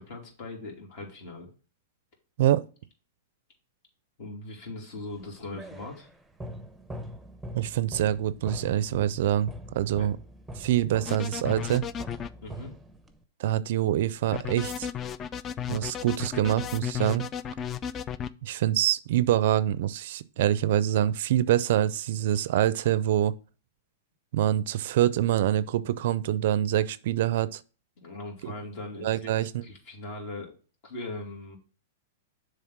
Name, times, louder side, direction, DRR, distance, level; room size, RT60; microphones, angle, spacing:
voice 1, 0.0-1.5 4.2-6.1 10.0-10.1 12.4-12.7 28.0-29.3 29.6-30.5 30.8-31.6, left 2 dB, 50° left, 2.8 m, -40 dB
sound 1, 5.1-13.2, equal, 5° right, 0.7 m, -43 dB
voice 2, 7.5-10.2 10.6-11.9 13.4-14.9 15.7-17.2 18.4-23.3 24.3-27.6 28.4-28.5 29.0-29.7, right 12 dB, 65° right, 0.4 m, -25 dB
sound 2, 11.0-12.3 14.3-18.3, left 9 dB, 25° left, 0.3 m, -34 dB
7.2 x 3.3 x 5.9 m
hypercardioid pair, 125°, 0 cm